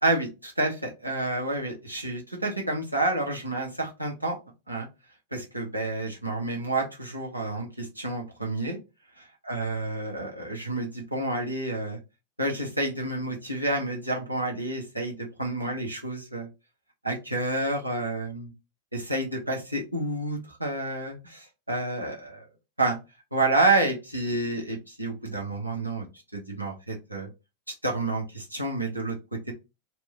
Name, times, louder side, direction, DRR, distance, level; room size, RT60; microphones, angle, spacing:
voice 1, 0.0-4.4 4.7-4.9 5.3-8.8 9.2-12.0 12.4-16.5 17.0-18.5 18.9-22.4 22.8-23.0 23.3-26.1 26.3-27.3 27.8-29.5, right 2 dB, 85° right, -1 dB, 0.9 m, -29 dB
2.9 x 2.1 x 3.4 m, 0.26 s
figure-of-eight pair, 90°, 0 cm